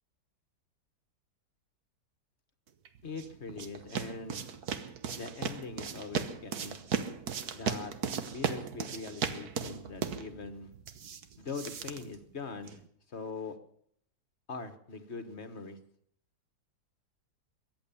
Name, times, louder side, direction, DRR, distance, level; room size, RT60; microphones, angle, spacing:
sound 1, 2.9-12.9, right 7 dB, 70° right, 1.6 m, -37 dB
voice 1, 3.0-4.5 5.1-6.8 7.5-7.9 8.3-10.7 11.4-12.8 13.1-13.6 14.5-15.8, left 4 dB, 45° left, 8 dB, 1.5 m, -42 dB
22.5 x 8.6 x 7.0 m, 0.68 s
omnidirectional pair, 1.7 m